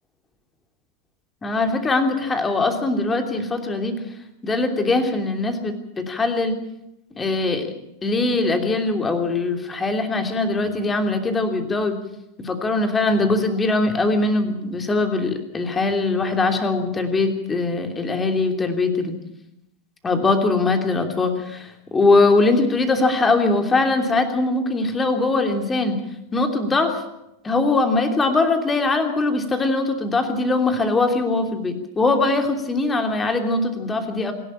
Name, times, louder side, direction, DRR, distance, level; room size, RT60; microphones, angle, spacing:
voice 1, 1.4-4.0 4.4-6.6 7.2-7.7 8.0-12.0 12.4-19.1 20.0-26.0 26.3-27.0 27.4-34.3, left 3 dB, 15° left, 5 dB, 3.0 m, -21 dB
26.5 x 12.0 x 8.7 m, 0.88 s
figure-of-eight pair, 90°, 0 cm